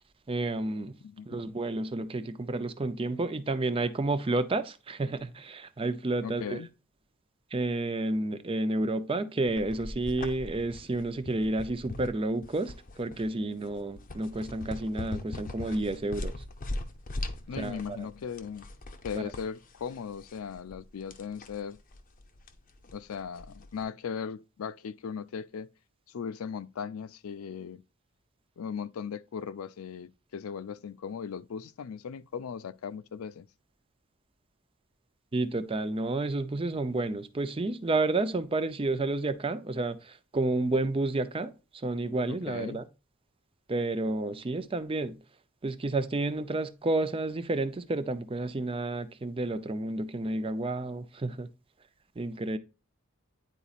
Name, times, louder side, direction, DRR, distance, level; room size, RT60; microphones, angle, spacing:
voice 1, 0.3-1.0 1.3-6.6 7.5-16.4 17.6-18.1 19.1-19.2 35.3-42.8 43.7-45.2 45.6-51.5 52.2-52.6, right 2 dB, 25° right, 0.5 m, -30 dB
voice 2, 1.0-1.4 6.2-6.7 17.5-18.6 19.0-21.8 22.9-25.7 26.1-27.8 28.6-33.5 42.3-42.8, left 6 dB, 80° left, 0.4 m, -38 dB
sound 1, 9.5-23.8, left 2 dB, 40° left, 0.7 m, -41 dB
10.0 x 4.0 x 2.4 m
head